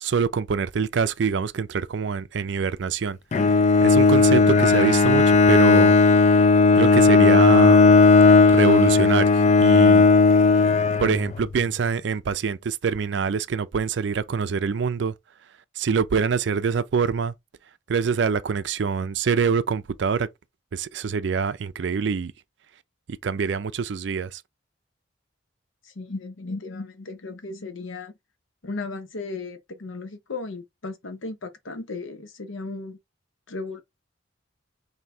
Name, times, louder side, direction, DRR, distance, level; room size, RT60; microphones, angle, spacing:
voice 1, 0.0-3.2 3.8-6.0 6.8-7.9 8.5-10.1 11.0-15.1 15.8-17.3 17.9-20.3 20.7-22.3 23.2-24.4, right 5 dB, 65° right, 0.4 m, -25 dB
Bowed string instrument, 3.3-11.5, left 4 dB, 35° left, 0.3 m, -16 dB
voice 2, 25.8-28.1 28.6-33.0 33.5-33.8, left 3 dB, 90° left, 0.8 m, -35 dB
3.4 x 2.8 x 4.2 m
head